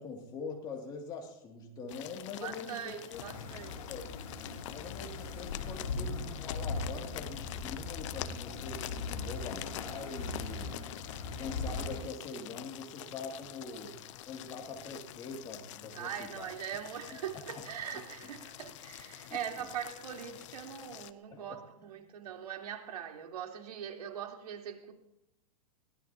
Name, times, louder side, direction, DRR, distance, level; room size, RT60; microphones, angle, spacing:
voice 1, 0.0-3.2 3.8-4.0 4.7-10.8 11.4-16.5 17.5-17.6 21.3-21.9, left 4 dB, 20° left, 1 dB, 2.7 m, -44 dB
sound 1, 1.9-21.1, left 13 dB, 50° left, 0.9 m, -46 dB
voice 2, 2.4-3.7 10.5-10.7 15.9-24.9, right 9 dB, 85° right, 2 dB, 3.7 m, -41 dB
sound 2, 3.1-12.0, left 4 dB, 75° left, 7.3 m, -39 dB
23.5 x 18.5 x 2.9 m, 0.81 s
supercardioid pair, 160°, 20 cm